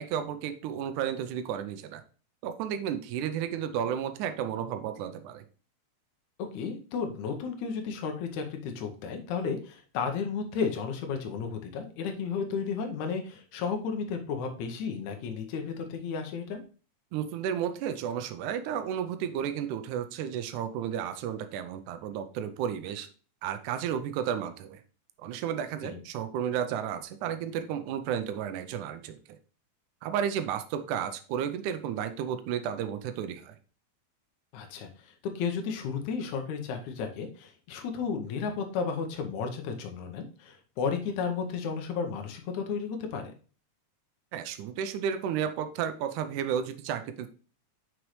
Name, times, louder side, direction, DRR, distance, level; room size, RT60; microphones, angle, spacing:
voice 1, 0.0-2.0 2.4-5.4 17.1-23.1 23.4-24.8 25.2-29.2 30.0-33.6 44.3-47.3, right 9 dB, 85° right, 9 dB, 2.1 m, -32 dB
voice 2, 6.5-16.6 25.8-26.0 34.5-34.9 35.4-43.2, left 5 dB, 75° left, 4 dB, 2.3 m, -33 dB
6.3 x 6.1 x 3.1 m, 0.38 s
omnidirectional pair, 3.4 m